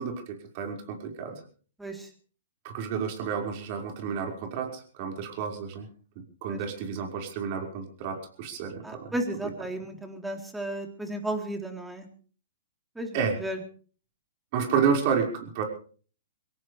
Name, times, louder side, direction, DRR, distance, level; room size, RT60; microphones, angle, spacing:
voice 1, 0.0-1.4 2.6-5.9 6.4-9.1 13.1-13.4 14.5-15.6, right 6 dB, 45° right, 4 dB, 5.4 m, -30 dB
voice 2, 1.8-2.1 6.5-6.6 8.8-12.1 13.0-13.6, right 1 dB, 5° right, 4 dB, 3.6 m, -34 dB
23.5 x 17.5 x 3.4 m, 0.42 s
hypercardioid pair, 140°, 0 cm